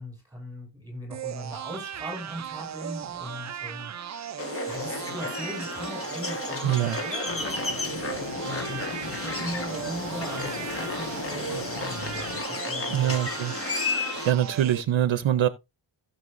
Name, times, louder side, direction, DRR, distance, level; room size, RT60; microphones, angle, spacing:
voice 1, 0.0-13.2, equal, 10° right, 6.2 m, -39 dB
sound 1, 1.1-14.8, right 8 dB, 40° right, 0.4 m, -37 dB
sound 2, 4.4-14.3, left 3 dB, 30° left, 1.4 m, -33 dB
voice 2, 6.6-7.0 12.9-13.5 13.9-15.5, right 11 dB, 75° right, 0.7 m, -24 dB
sound 3, 7.3-12.4, left 6 dB, 70° left, 1.7 m, -40 dB
15.5 x 7.1 x 2.5 m
wide cardioid pair, 180°, 48 cm